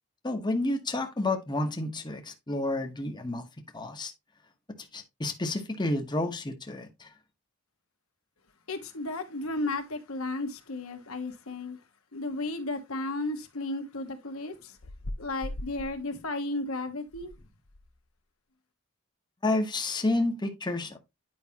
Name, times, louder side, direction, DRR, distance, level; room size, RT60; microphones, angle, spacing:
voice 1, 0.2-3.4 3.7-4.1 4.9-7.1 19.4-21.0, left 2 dB, 20° left, 0.9 m, -30 dB
voice 2, 8.7-11.8 12.1-14.8 15.2-17.3, left 2 dB, 85° left, 1.4 m, -34 dB
sound 1, 14.8-16.0 17.1-17.4 17.7-17.9, left 1 dB, 60° left, 0.8 m, -39 dB
9.4 x 5.1 x 2.8 m
head